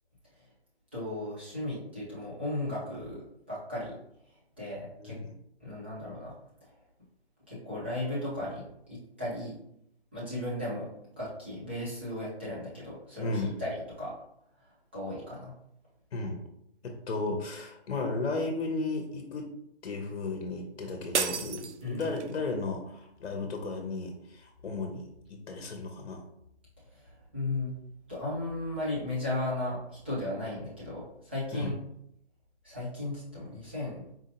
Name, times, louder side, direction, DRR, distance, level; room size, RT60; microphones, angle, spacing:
voice 1, 0.9-4.0 4.6-5.2 5.6-6.3 6.6-6.7 7.5-8.6 8.9-9.6 10.1-10.9 11.2-14.1 14.9-15.5 21.8-22.1 26.9-27.7 28.1-31.8 32.6-34.0, left 1 dB, 10° right, -9 dB, 0.5 m, -35 dB
voice 2, 5.0-5.3 13.2-13.6 16.1-16.4 16.8-19.5 19.8-26.2 31.5-31.7, left 3 dB, 65° left, 3 dB, 0.8 m, -34 dB
sound 1, 21.1-22.4, right 7 dB, 85° right, 0.5 m, -32 dB
4.3 x 2.7 x 2.7 m, 0.75 s
hypercardioid pair, 155°, 34 cm